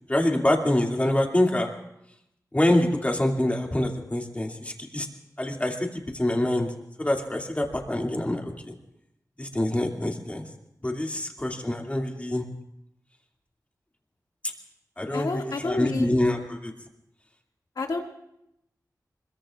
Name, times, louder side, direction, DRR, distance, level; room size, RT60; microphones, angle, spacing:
voice 1, 0.1-1.7 2.5-5.1 5.4-5.7 6.1-6.7 7.0-8.7 9.4-10.5 10.8-12.4 15.0-16.7, left 1 dB, 20° left, 0 dB, 2.6 m, -25 dB
voice 2, 15.1-16.1 17.8-18.0, left 3 dB, 75° left, 1 dB, 2.3 m, -29 dB
25.5 x 22.0 x 2.5 m, 0.81 s
wide cardioid pair, 95°, 7 cm